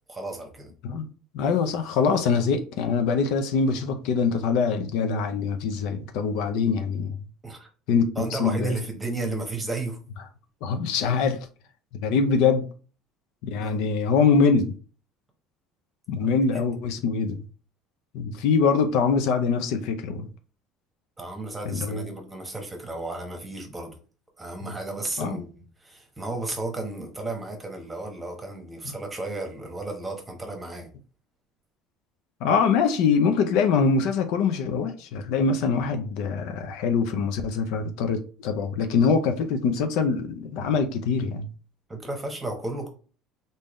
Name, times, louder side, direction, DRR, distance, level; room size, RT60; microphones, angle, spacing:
voice 1, 0.1-0.7 7.4-7.7 8.2-10.0 13.6-13.8 16.2-16.6 21.2-24.0 24.4-25.5 25.8-30.9 41.9-42.9, right 2 dB, 15° right, 1.1 m, -33 dB
voice 2, 1.3-7.1 7.9-8.7 10.6-11.5 12.0-12.7 13.4-14.7 16.1-17.4 18.1-20.3 21.7-22.1 25.2-25.4 32.4-41.5, left 5 dB, 75° left, 0.5 m, -24 dB
3.6 x 2.7 x 3.1 m
supercardioid pair, 115°, 0 cm